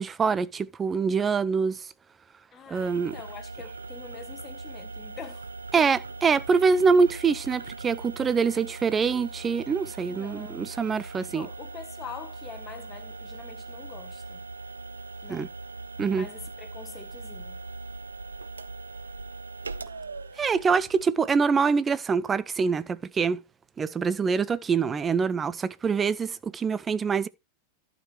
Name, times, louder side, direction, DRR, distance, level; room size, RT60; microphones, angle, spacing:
voice 1, 0.0-1.8 2.7-3.1 5.7-11.5 15.3-15.5 16.0-16.3 20.4-23.4 23.8-27.3, right 5 dB, 20° right, 0.6 m, -25 dB
voice 2, 2.5-5.5 5.8-5.9 10.1-10.7 11.2-14.4 15.2-15.5 16.0-17.6, left 7 dB, 25° left, 1.4 m, -44 dB
sound 1, 2.7-21.1, right 3 dB, 75° right, 0.5 m, -40 dB
12.0 x 5.2 x 4.6 m
figure-of-eight pair, 90°, 0 cm